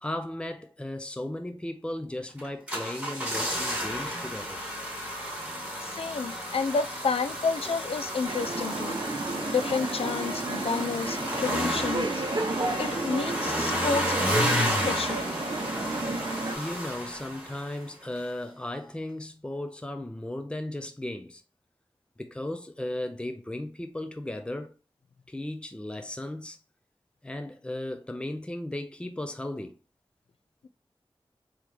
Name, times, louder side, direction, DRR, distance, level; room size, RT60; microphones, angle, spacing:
voice 1, 0.0-4.6 16.2-21.4 22.2-24.7 25.3-26.6 27.2-29.7, left 1 dB, 10° left, 0.6 m, -36 dB
sound 1, 2.4-17.9 18.2-18.3, equal, 15° right, 2.2 m, -32 dB
voice 2, 5.8-9.0 9.5-12.2 12.8-15.3, left 4 dB, 70° left, 0.4 m, -30 dB
sound 2, 8.2-16.6, right 3 dB, 50° right, 0.7 m, -32 dB
3.7 x 3.0 x 3.2 m
cardioid pair, 45°, 10 cm